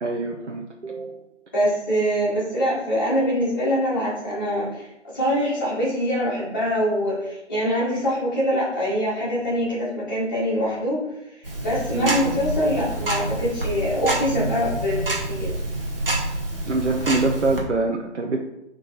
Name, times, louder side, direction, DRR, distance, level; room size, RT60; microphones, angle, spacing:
voice 1, 0.0-1.2 11.9-12.1 16.7-18.4, right 3 dB, 75° right, 1 dB, 0.9 m, -25 dB
voice 2, 1.5-11.0 11.6-15.5, equal, 15° left, -11 dB, 2.0 m, -24 dB
Tick-tock, 11.4-17.6, right 1 dB, 50° right, 1.6 m, -27 dB
6.1 x 4.0 x 4.1 m, 0.91 s
figure-of-eight pair, 170°, 36 cm